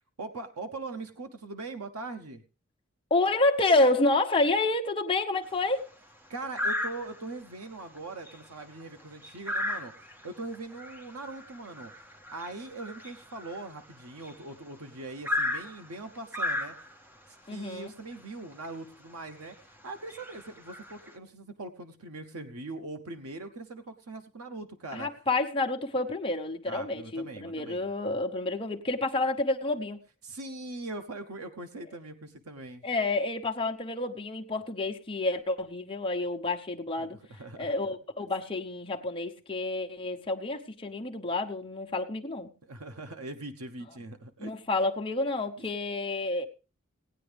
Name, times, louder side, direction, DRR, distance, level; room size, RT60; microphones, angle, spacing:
voice 1, 0.2-2.4 6.3-9.9 10.2-11.9 12.3-16.7 17.3-19.6 19.8-25.1 26.7-27.9 30.2-32.8 37.0-37.8 42.6-44.5, right 2 dB, 90° right, 0.9 m, -41 dB
voice 2, 3.1-5.9 17.5-17.9 24.9-30.0 32.8-37.2 37.6-42.5 44.4-46.5, left 2 dB, 25° left, 0.9 m, -29 dB
sound 1, 5.4-5.8 6.5-7.4 7.8-8.0 8.2-14.5 15.2-17.1 18.1-18.2 18.6-18.8 19.3-19.5 20.0-21.1, left 2 dB, 10° right, 0.7 m, -35 dB
17.5 x 9.0 x 3.4 m
head